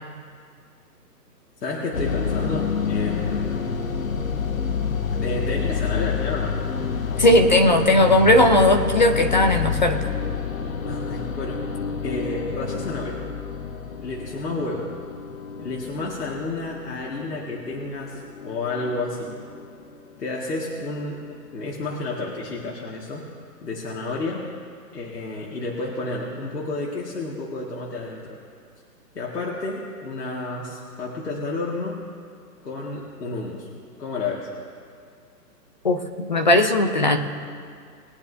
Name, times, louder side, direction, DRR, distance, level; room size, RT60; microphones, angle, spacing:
voice 1, 1.6-3.7 5.1-6.6 10.8-11.8 12.0-13.2 14.0-14.9 15.6-19.3 20.2-23.3 23.6-24.5 24.9-28.4 29.1-32.0 32.6-33.7 34.0-34.5, left 2 dB, 75° left, -4 dB, 2.3 m, -31 dB
sound 1, 1.9-20.3, left 6 dB, 55° left, 1.0 m, -28 dB
voice 2, 7.2-10.1 35.8-37.2, left 1 dB, 30° left, 5 dB, 0.7 m, -17 dB
22.0 x 9.7 x 2.8 m, 2.2 s
hypercardioid pair, 180°, 48 cm